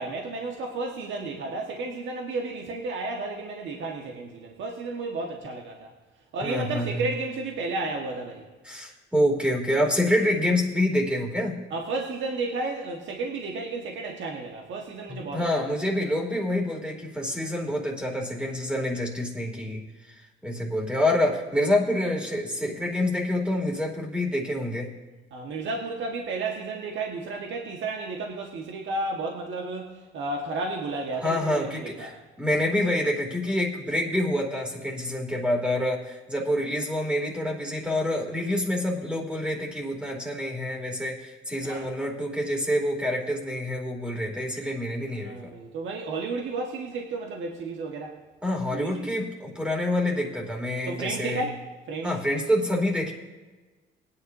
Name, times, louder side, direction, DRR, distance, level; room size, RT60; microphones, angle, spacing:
voice 1, 0.0-5.9 6.3-8.4 11.7-15.7 25.3-32.1 41.6-41.8 45.1-48.2 48.7-49.1 50.9-51.6 51.9-52.1, right 3 dB, 70° right, 0 dB, 1.5 m, -32 dB
voice 2, 6.4-7.1 8.6-11.6 15.1-20.1 20.4-24.9 31.2-45.5 48.4-51.4 52.0-53.1, left 1 dB, 5° right, 0 dB, 2.7 m, -27 dB
19.0 x 10.0 x 2.7 m, 1.2 s
cardioid pair, 90°, 20 cm